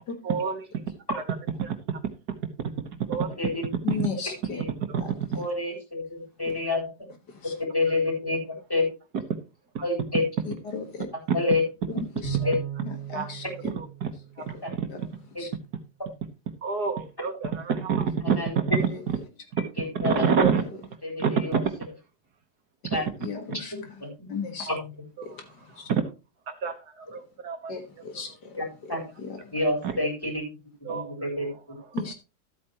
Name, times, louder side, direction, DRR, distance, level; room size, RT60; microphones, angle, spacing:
voice 1, 0.2-0.8 1.6-2.0 3.1-3.3 3.9-4.1 4.9-5.0 9.8-9.9 12.4-12.5 13.1-13.3 13.6-14.1 14.5-14.9 16.6-18.6 19.9-20.6 21.2-21.7 25.2-25.4 25.9-26.0 26.5-27.8 29.8-30.0 30.9-31.2 31.9-32.0, right 6 dB, 60° right, 7 dB, 1.7 m, -27 dB
voice 2, 3.8-4.6 5.0-5.1 6.5-6.6 7.3-7.5 10.5-11.1 11.9-12.4 12.8-13.4 14.9-15.0 15.4-15.5 18.9-19.0 22.9-23.7 24.3-24.7 25.2-25.9 27.7-29.4 31.9-32.1, left 5 dB, 65° left, 6 dB, 2.1 m, -36 dB
voice 3, 5.3-6.9 7.7-8.4 8.7-8.8 9.8-10.2 11.3-11.6 12.4-12.6 14.6-14.7 15.3-15.4 18.3-18.6 19.8-20.2 21.0-21.6 22.9-23.0 23.7-24.1 24.7-24.8 28.6-29.0 29.5-30.5 30.8-31.8, left 2 dB, 10° left, 1 dB, 4.2 m, -28 dB
Bowed string instrument, 12.2-14.9, right 8 dB, 90° left, 4.1 m, -36 dB
12.5 x 8.7 x 2.9 m, 0.29 s
omnidirectional pair, 1.9 m